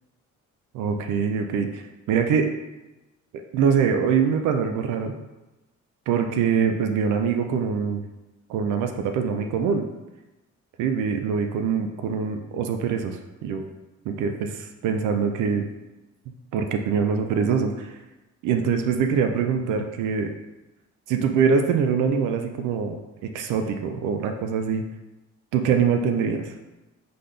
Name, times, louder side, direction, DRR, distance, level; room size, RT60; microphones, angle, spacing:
voice 1, 0.7-1.8 2.1-2.5 3.5-5.1 6.1-8.0 8.5-9.8 10.8-13.6 14.2-15.7 16.5-17.9 18.4-20.3 21.1-23.0 23.3-24.8 25.5-26.5, right 6 dB, 90° right, 5 dB, 0.5 m, -23 dB
3.8 x 3.8 x 3.2 m, 1.0 s
cardioid pair, 90°, 30 cm